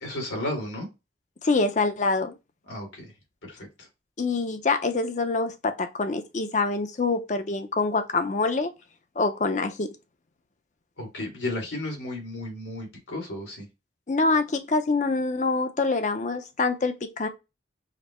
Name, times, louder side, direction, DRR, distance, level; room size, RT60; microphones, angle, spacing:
voice 1, 0.0-0.9 2.7-3.1 3.4-3.9 11.0-13.7, left 1 dB, 85° left, 2.1 m, -33 dB
voice 2, 1.4-2.3 4.2-8.7 9.2-9.9 14.1-17.3, left 3 dB, 40° left, 0.5 m, -25 dB
5.1 x 2.0 x 4.2 m
head